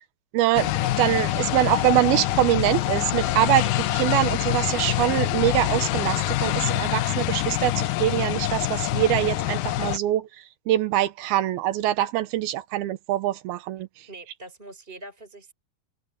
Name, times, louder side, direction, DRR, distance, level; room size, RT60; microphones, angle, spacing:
voice 1, 0.3-14.1, right 14 dB, 85° right, 2.8 m, -24 dB
sound 1, 0.5-10.0, left 15 dB, 75° left, 2.3 m, -25 dB
voice 2, 14.1-15.5, right 2 dB, 15° right, 5.0 m, -43 dB
omnidirectional pair, 4.3 m